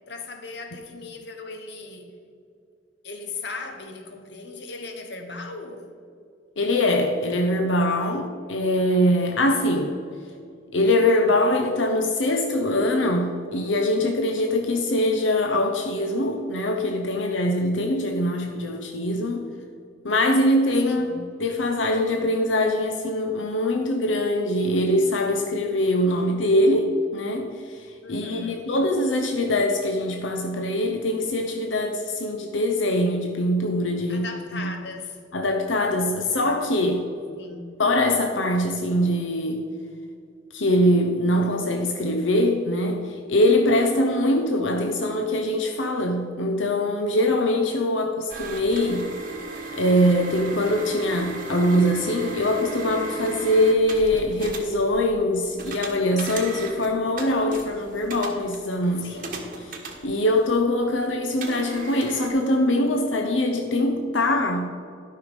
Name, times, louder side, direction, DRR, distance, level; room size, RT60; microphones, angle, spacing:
voice 1, 0.1-2.2 3.0-5.8 7.9-8.1 20.8-21.3 28.0-28.6 34.1-35.2 37.3-37.6 59.0-59.4, left 3 dB, 65° left, 5 dB, 1.1 m, -38 dB
voice 2, 6.6-9.9 10.7-19.5 20.0-34.7 35.3-37.1 37.8-39.6 40.5-49.1 49.7-59.2 59.6-59.7 60.0-64.7, left 1 dB, 90° left, 4 dB, 0.8 m, -23 dB
sound 1, 48.3-60.6 61.4-62.3, right 3 dB, 45° right, 1.3 m, -36 dB
12.0 x 5.6 x 5.1 m, 2.4 s
head